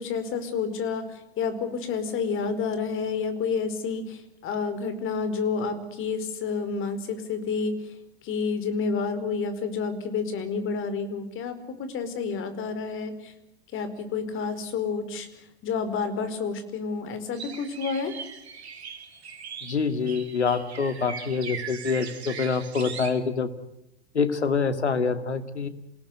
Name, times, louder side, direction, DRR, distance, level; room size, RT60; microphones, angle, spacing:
voice 1, 0.0-7.9 8.2-13.3 13.7-15.3 15.6-18.1, left 5 dB, 40° left, 11 dB, 4.8 m, -29 dB
sound 1, 17.3-23.1, right 6 dB, 75° right, 4.0 m, -39 dB
voice 2, 19.6-23.5 24.1-25.7, left 5 dB, 90° left, 11 dB, 2.3 m, -26 dB
28.0 x 18.0 x 9.4 m, 0.85 s
hypercardioid pair, 95°, 33 cm